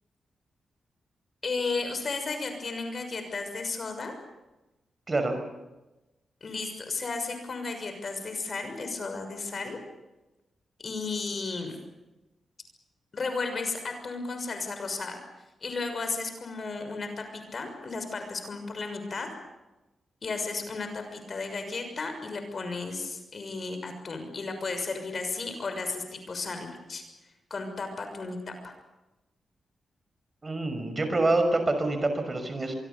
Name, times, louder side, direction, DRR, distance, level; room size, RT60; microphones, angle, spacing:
voice 1, 1.4-4.1 6.4-9.8 10.8-11.8 13.1-15.2 15.6-19.4 20.2-27.0 27.5-28.7, left 3 dB, 55° left, 7 dB, 6.3 m, -34 dB
voice 2, 5.1-5.4 30.4-32.7, right 2 dB, 35° right, 7 dB, 6.0 m, -26 dB
25.0 x 23.5 x 7.1 m, 1.0 s
supercardioid pair, 45°, 0 cm